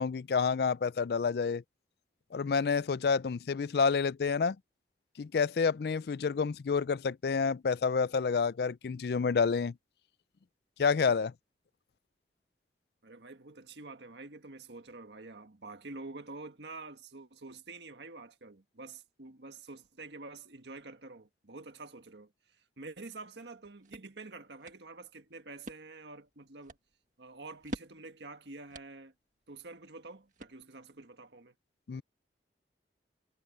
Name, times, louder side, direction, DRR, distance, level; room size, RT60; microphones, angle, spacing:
voice 1, 0.0-1.6 2.3-4.6 5.2-9.7 10.8-11.3 31.9-32.0, left 5 dB, 65° left, 0.4 m, -29 dB
voice 2, 13.0-26.8 27.2-29.1 29.5-31.5, right 3 dB, 80° right, 1.6 m, -48 dB
sound 1, 23.4-31.0, right 1 dB, 45° right, 1.9 m, -50 dB
head